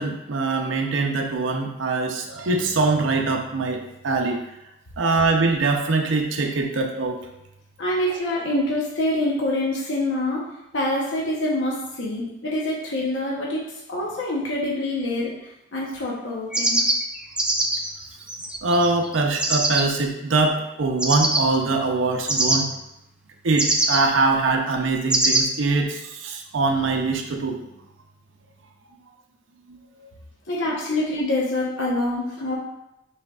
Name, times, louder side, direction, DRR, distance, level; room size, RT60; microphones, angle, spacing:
voice 1, 0.0-4.4 5.0-7.2 18.6-22.6 23.4-27.6, right 3 dB, 80° right, 3 dB, 0.6 m, -23 dB
voice 2, 7.8-10.4 10.7-13.6 13.9-16.8 30.5-32.6, left 1 dB, 70° left, -4 dB, 0.9 m, -25 dB
sound 1, 16.5-19.8 21.0-21.4 22.3-22.6 23.6-24.0 25.1-25.4, right 1 dB, 5° right, 0.4 m, -22 dB
6.3 x 3.4 x 2.4 m, 0.87 s
head